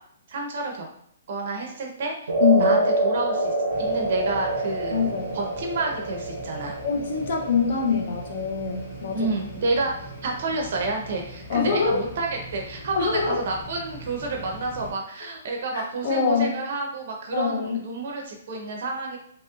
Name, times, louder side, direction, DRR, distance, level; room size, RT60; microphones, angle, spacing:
voice 1, 0.3-0.9 1.3-2.1 2.6-6.8 9.1-9.9 10.2-19.2, right 3 dB, 40° right, 1 dB, 0.6 m, -29 dB
sound 1, 2.3-10.6, right 2 dB, 90° right, 0.6 m, -27 dB
voice 2, 2.4-2.8 4.9-5.4 6.8-9.3 11.5-12.0 13.0-13.4 15.7-16.5 17.3-17.8, left 6 dB, 45° left, 1 dB, 0.5 m, -24 dB
sound 2, 3.7-14.9, right 1 dB, 20° left, 1.0 m, -42 dB
2.9 x 2.9 x 2.3 m, 0.65 s
hypercardioid pair, 175°, 0 cm